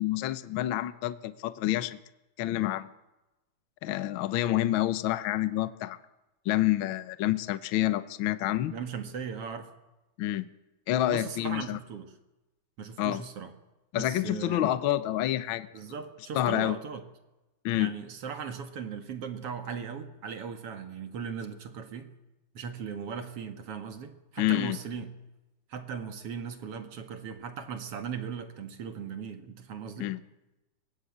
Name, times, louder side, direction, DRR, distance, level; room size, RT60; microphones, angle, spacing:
voice 1, 0.0-2.0 2.4-2.9 3.8-6.0 6.4-8.7 10.2-10.4 10.9-11.8 13.0-13.2 13.9-15.7 16.3-16.8 17.6-17.9 24.4-24.8 30.0-30.2, left 14 dB, 70° left, 13 dB, 1.2 m, -28 dB
voice 2, 8.7-9.7 11.1-12.1 12.8-13.5 13.9-14.6 15.7-17.0 17.7-22.1 22.5-25.1 25.7-30.1, right 6 dB, 55° right, 8 dB, 2.4 m, -38 dB
24.0 x 20.0 x 8.7 m, 1.0 s
omnidirectional pair, 3.5 m